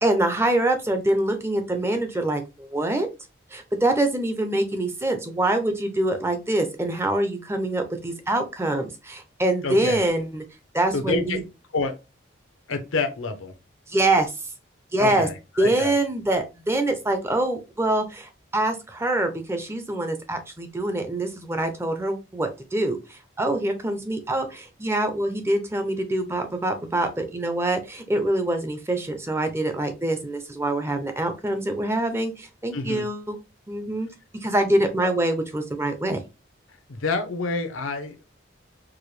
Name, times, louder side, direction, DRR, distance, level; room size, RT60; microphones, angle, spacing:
voice 1, 0.0-3.1 3.5-10.4 10.7-11.4 13.9-14.3 14.9-15.3 15.6-33.4 33.7-34.1 34.4-36.2, right 1 dB, 15° right, 0.5 m, -25 dB
voice 2, 9.6-10.0 10.9-11.4 11.7-12.0 12.7-13.5 15.0-15.9 32.7-33.1 35.0-35.1 36.9-38.3, left 3 dB, 85° left, 0.7 m, -28 dB
4.7 x 2.2 x 3.2 m
head